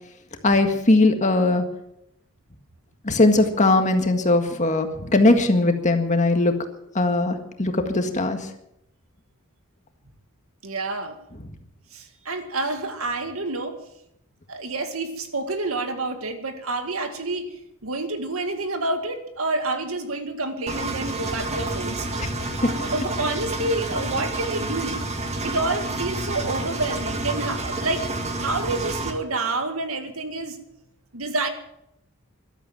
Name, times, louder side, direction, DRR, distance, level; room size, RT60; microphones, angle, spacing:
voice 1, 0.4-1.6 3.0-6.5 7.0-8.4 22.2-22.3 22.6-22.7, left 2 dB, 35° left, 6 dB, 1.8 m, -19 dB
voice 2, 10.6-11.2 11.9-13.8 14.5-17.6 17.8-22.3 22.6-25.0 25.4-28.0 28.4-30.6 31.1-31.5, right 2 dB, 85° right, 7 dB, 2.0 m, -28 dB
Engine, 20.7-29.1, right 2 dB, 30° right, 1.9 m, -29 dB
14.5 x 12.5 x 7.5 m, 0.80 s
head